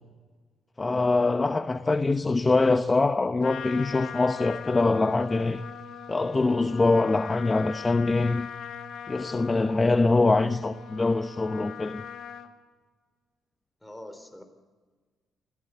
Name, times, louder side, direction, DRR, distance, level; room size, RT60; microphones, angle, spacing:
voice 1, 0.8-5.6 6.1-8.5 9.1-12.0, left 3 dB, 25° left, 0.8 m, -24 dB
voice 2, 1.7-2.1 13.8-14.4, left 1 dB, 5° left, 4.1 m, -44 dB
Trumpet, 3.4-12.5, left 8 dB, 65° left, 2.1 m, -41 dB
26.0 x 17.0 x 8.2 m
cardioid pair, 90°, 0 cm